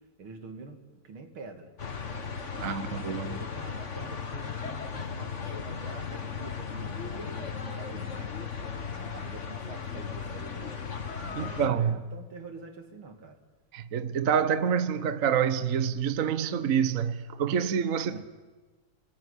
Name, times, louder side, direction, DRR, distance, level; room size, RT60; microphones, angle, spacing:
voice 1, 0.2-1.7 2.5-8.3 8.9-10.7 11.2-13.4 18.1-18.2, right 4 dB, 80° right, 3.4 m, -46 dB
sound 1, 1.8-11.7, left 6 dB, 40° left, 1.8 m, -36 dB
voice 2, 2.6-3.4 11.4-12.0 13.7-18.2, right 7 dB, 50° right, 1.1 m, -27 dB
29.5 x 19.0 x 10.0 m
omnidirectional pair, 2.3 m